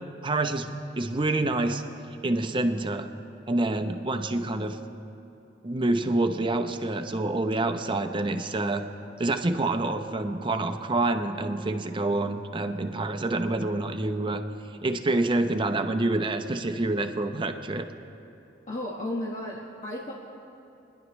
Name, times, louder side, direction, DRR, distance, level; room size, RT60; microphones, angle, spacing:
voice 1, 0.2-1.8 2.2-3.1 3.5-4.8 5.6-8.9 9.2-14.4 14.8-17.9, right 2 dB, 25° right, 7 dB, 0.7 m, -27 dB
voice 2, 18.7-20.1, left 1 dB, 40° left, -5 dB, 1.3 m, -33 dB
29.0 x 10.5 x 3.1 m, 2.8 s
head